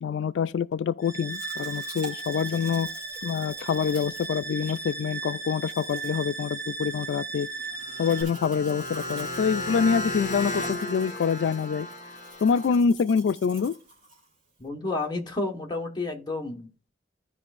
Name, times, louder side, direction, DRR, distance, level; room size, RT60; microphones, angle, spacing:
voice 1, 0.0-2.9 3.2-7.5 8.0-11.9 12.4-13.7, left 6 dB, 90° left, 0.3 m, -26 dB
sound 1, 1.0-8.2, right 3 dB, 15° right, 1.9 m, -36 dB
Domestic sounds home sounds, 1.3-14.7, right 2 dB, 45° right, 2.4 m, -48 dB
sound 2, 7.7-12.8, equal, 45° left, 1.3 m, -34 dB
voice 2, 14.6-16.9, left 2 dB, 25° left, 1.3 m, -31 dB
15.0 x 5.1 x 2.5 m
head